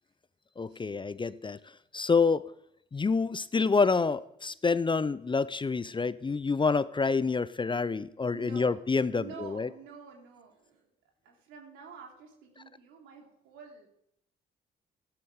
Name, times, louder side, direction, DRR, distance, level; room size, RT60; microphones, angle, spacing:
voice 1, 0.6-1.6 1.9-2.4 2.9-9.7, left 4 dB, 25° left, 17 dB, 0.7 m, -27 dB
voice 2, 8.3-8.8 9.1-10.9 11.2-13.9, right 6 dB, 70° right, 0 dB, 3.5 m, -48 dB
14.5 x 12.5 x 5.0 m, 0.75 s
hypercardioid pair, 45°, 20 cm